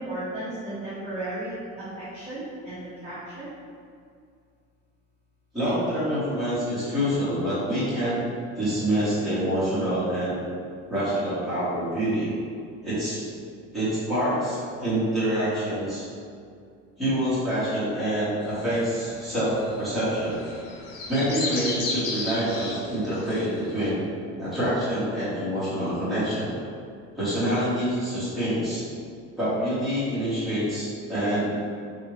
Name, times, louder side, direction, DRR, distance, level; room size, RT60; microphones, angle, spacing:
voice 1, 0.0-3.5, right 1 dB, 25° right, -13 dB, 0.7 m, -35 dB
voice 2, 5.5-8.2 8.6-10.4 10.9-12.3 12.8-13.2 13.7-16.1 17.0-20.4 21.1-24.0 24.4-26.5 27.1-28.8 29.4-31.5, equal, ahead, -13 dB, 1.2 m, -26 dB
sound 1, 18.4-23.9, left 3 dB, 80° left, 0.8 m, -35 dB
3.5 x 2.6 x 3.1 m, 2.3 s
cardioid pair, 170°, 29 cm